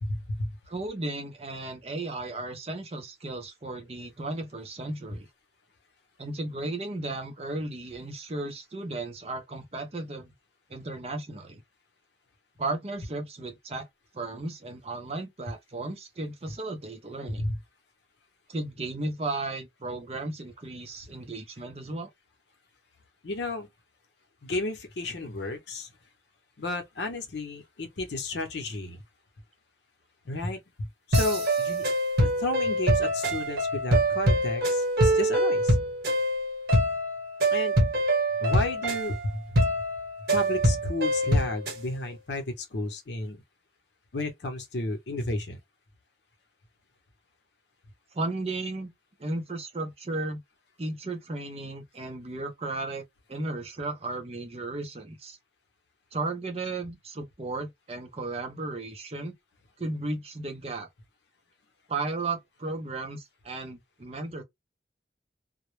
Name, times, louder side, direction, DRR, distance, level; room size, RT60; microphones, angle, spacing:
voice 1, 0.0-0.5 17.4-17.6 23.2-23.7 24.4-25.9 26.6-29.0 30.2-31.8 32.2-35.8 37.5-37.8 38.4-39.6 40.3-43.4 44.1-45.6, left 2 dB, 80° left, 0.7 m, -33 dB
voice 2, 0.7-5.3 6.2-10.3 10.7-11.6 12.6-13.9 14.1-17.4 18.5-22.1 48.1-48.9 49.2-50.4 50.8-53.0 53.3-55.4 56.1-59.3 59.8-60.9 61.9-64.4, right 2 dB, 35° right, 0.5 m, -35 dB
sound 1, 31.1-41.8, right 1 dB, 60° right, 0.9 m, -25 dB
2.1 x 2.0 x 3.0 m
head